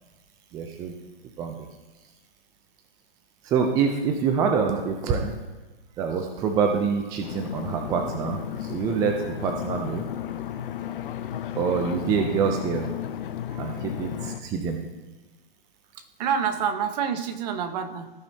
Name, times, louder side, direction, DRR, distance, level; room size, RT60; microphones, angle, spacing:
voice 1, 0.5-0.9 1.4-1.7 3.4-5.4 6.0-10.0 11.6-12.9 13.6-14.8, right 6 dB, 10° right, 4 dB, 0.4 m, -26 dB
sound 1, 7.2-14.4, left 10 dB, 60° left, 0.7 m, -34 dB
voice 2, 13.5-13.8 16.0-18.1, right 7 dB, 45° right, 8 dB, 1.0 m, -28 dB
15.0 x 5.3 x 2.7 m, 1.2 s
hypercardioid pair, 135°, 30 cm